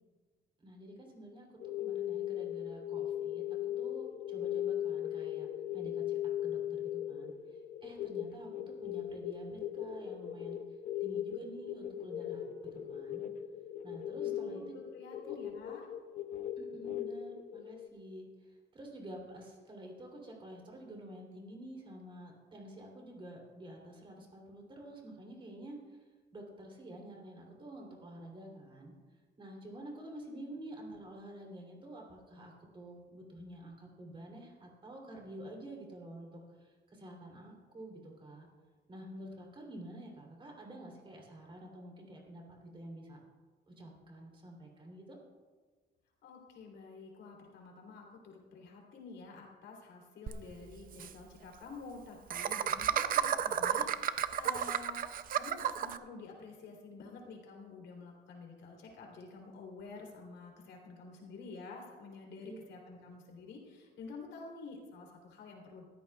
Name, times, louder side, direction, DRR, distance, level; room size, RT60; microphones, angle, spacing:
voice 1, 0.6-5.5 5.7-6.0 6.4-10.6 11.0-13.3 13.8-14.7 15.2-15.3 16.6-26.0 26.3-28.9 29.4-38.5 38.9-42.4 42.7-43.2 43.7-45.2 62.4-62.6, right 1 dB, 25° right, -1 dB, 3.1 m, -49 dB
sound 1, 1.6-17.9, left 11 dB, 45° left, 0.7 m, -38 dB
voice 2, 14.2-15.9 46.2-65.8, left 4 dB, 75° left, 0 dB, 3.3 m, -49 dB
Laughter, 50.3-50.4 50.6-50.7 50.9-51.1 52.3-56.0, right 9 dB, 50° right, 0.5 m, -32 dB
21.0 x 14.0 x 2.4 m, 1.4 s
cardioid pair, 170°, 19 cm